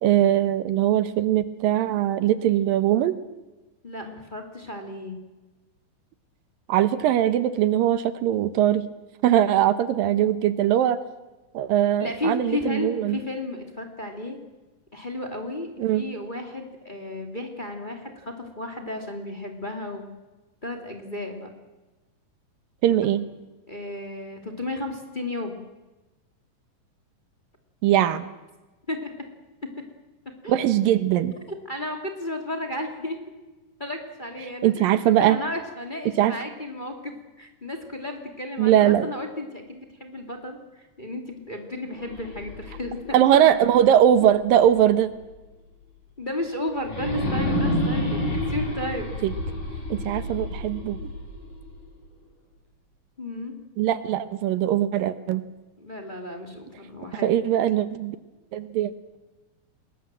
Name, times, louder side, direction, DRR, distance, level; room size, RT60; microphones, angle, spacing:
voice 1, 0.0-3.2 6.7-8.8 9.2-11.0 11.5-13.2 15.8-16.0 22.8-23.2 27.8-28.3 30.5-31.3 34.6-35.4 36.2-36.3 38.6-39.1 43.1-45.1 49.2-49.3 49.9-51.0 53.8-55.4 57.2-58.2 58.5-58.9, right 11 dB, 80° right, 12 dB, 2.8 m, -21 dB
voice 2, 3.8-5.2 12.0-14.4 14.9-20.1 20.6-21.5 23.7-25.6 28.9-29.1 30.4-30.6 31.6-33.2 33.8-34.9 35.2-43.5 46.2-49.1 53.2-53.5 55.8-57.4, left 1 dB, 15° left, 3 dB, 2.5 m, -33 dB
sound 1, 41.9-44.9 45.3-45.4 46.8-51.9, left 1 dB, 65° left, 9.6 m, -29 dB
27.5 x 21.5 x 7.6 m, 1.1 s
omnidirectional pair, 4.0 m